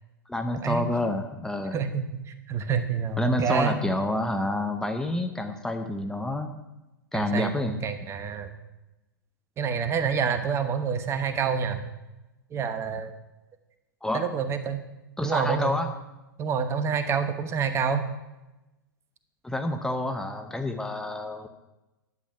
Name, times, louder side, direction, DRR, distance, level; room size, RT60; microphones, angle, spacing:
voice 1, 0.3-1.8 3.2-6.5 7.1-7.8 14.0-14.2 15.2-15.9 19.4-21.5, left 1 dB, 5° left, 5 dB, 0.8 m, -28 dB
voice 2, 1.7-2.0 2.5-3.8 7.1-8.5 9.6-11.8 12.5-13.1 14.1-14.8 15.2-15.7 16.4-18.0, right 6 dB, 25° right, 9 dB, 1.0 m, -27 dB
11.0 x 8.4 x 5.6 m, 1.0 s
figure-of-eight pair, 105°, 12 cm